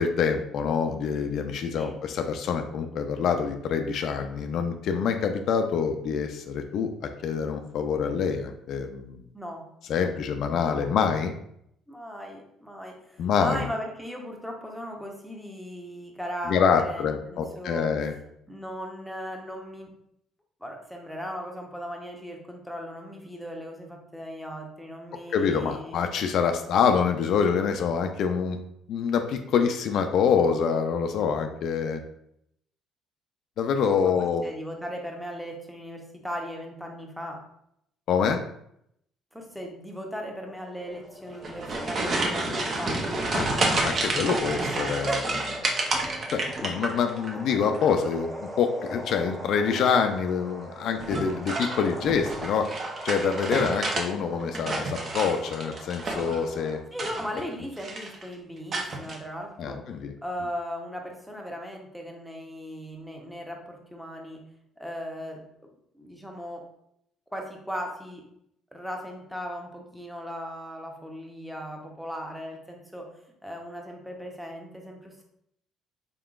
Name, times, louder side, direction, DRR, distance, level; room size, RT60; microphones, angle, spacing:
voice 1, 0.0-6.9 7.2-9.2 9.9-11.3 13.2-13.7 16.5-18.2 25.3-28.6 28.9-32.0 33.6-34.5 38.1-38.4 43.3-45.1 46.3-52.7 53.0-56.8 59.6-60.1, left 6 dB, 65° left, 6 dB, 0.4 m, -26 dB
voice 2, 9.3-9.7 10.8-10.9 11.9-17.9 18.5-19.9 20.6-26.0 34.0-37.4 39.3-43.0 45.0-45.3 56.9-59.8 60.2-64.4 64.8-65.4 65.9-66.6 67.3-68.2 68.7-73.1 73.4-75.2, equal, ahead, 1 dB, 0.8 m, -37 dB
sound 1, 40.4-56.8, equal, 25° right, 1.4 m, -42 dB
sound 2, 41.3-47.3 47.6-48.2 49.6-50.0 51.0-54.1 54.4-56.4 56.9-57.5 57.8-58.2 58.7-59.2, right 2 dB, 45° right, 0.7 m, -30 dB
3.7 x 3.6 x 2.4 m, 0.74 s
supercardioid pair, 80°, 0 cm